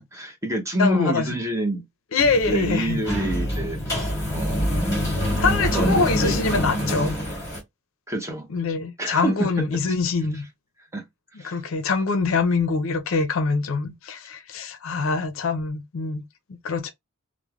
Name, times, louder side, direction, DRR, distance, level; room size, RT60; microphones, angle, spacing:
voice 1, 0.0-1.8 2.5-4.7 5.0-5.2 5.7-6.4 8.1-8.5 9.0-9.3 10.9-11.0 11.4-11.6, right 1 dB, 15° right, 0.6 m, -27 dB
voice 2, 0.8-1.4 2.1-3.0 5.4-7.2 8.5-10.4 11.4-16.2 16.6-16.9, left 4 dB, 65° left, 0.4 m, -24 dB
sound 1, 2.2-7.6, equal, 15° left, 1.5 m, -25 dB
3.1 x 2.0 x 2.2 m
head